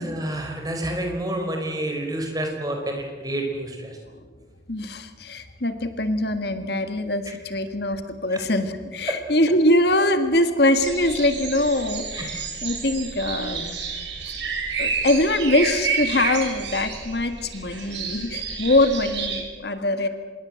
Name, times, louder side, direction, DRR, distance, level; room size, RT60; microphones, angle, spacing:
voice 1, 0.0-4.0 12.1-12.2, right 1 dB, 20° right, 3 dB, 4.9 m, -29 dB
voice 2, 4.7-13.8 14.8-20.1, left 1 dB, 55° left, 8 dB, 1.7 m, -23 dB
sound 1, 10.8-19.4, right 5 dB, 70° right, 6.1 m, -30 dB
26.5 x 21.5 x 7.7 m, 1.5 s
head